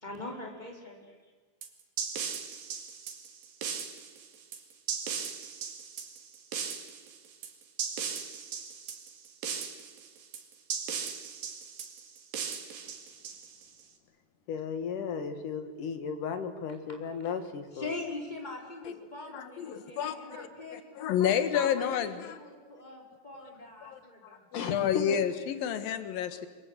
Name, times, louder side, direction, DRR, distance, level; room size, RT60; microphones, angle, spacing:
voice 1, 0.0-1.0 17.0-17.1 17.7-20.8 21.2-24.5, left 2 dB, 10° left, 1 dB, 4.8 m, -42 dB
sound 1, 1.6-13.8, right 7 dB, 85° right, 3.9 m, -38 dB
voice 2, 14.5-18.0 24.5-25.2, left 6 dB, 65° left, 8 dB, 3.4 m, -35 dB
voice 3, 19.3-22.4 23.4-23.5 23.8-24.0 24.5-26.5, left 9 dB, 90° left, 10 dB, 3.3 m, -30 dB
27.0 x 23.5 x 8.4 m, 1.4 s
omnidirectional pair, 4.0 m